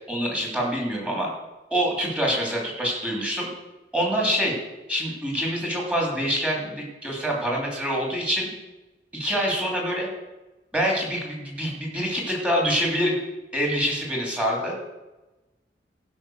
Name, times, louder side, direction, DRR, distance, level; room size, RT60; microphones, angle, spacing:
voice 1, 0.1-1.3 1.7-3.5 3.9-4.5 4.9-8.5 9.1-10.1 10.7-13.2 13.5-14.8, equal, 5° right, -2 dB, 3.0 m, -25 dB
15.0 x 5.7 x 6.3 m, 1.1 s
head